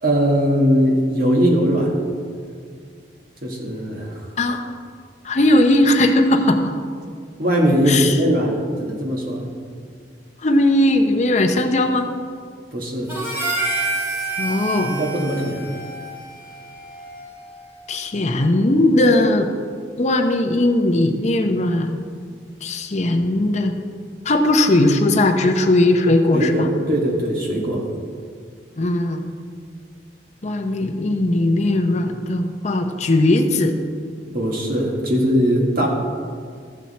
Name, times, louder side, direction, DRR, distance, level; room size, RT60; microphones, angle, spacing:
voice 1, 0.0-1.9 3.4-4.3 7.4-9.5 12.7-13.2 14.8-15.7 26.3-27.8 34.3-35.9, equal, 55° right, 0 dB, 1.7 m, -20 dB
voice 2, 5.2-6.7 7.9-8.2 10.4-12.1 14.4-14.9 17.9-19.5 20.0-22.0 22.6-23.7 24.2-26.7 28.8-29.2 30.4-33.8, left 1 dB, 40° left, 5 dB, 0.7 m, -18 dB
Harmonica, 13.1-17.6, right 3 dB, 15° right, 2.3 m, -28 dB
13.5 x 7.2 x 4.2 m, 2.1 s
head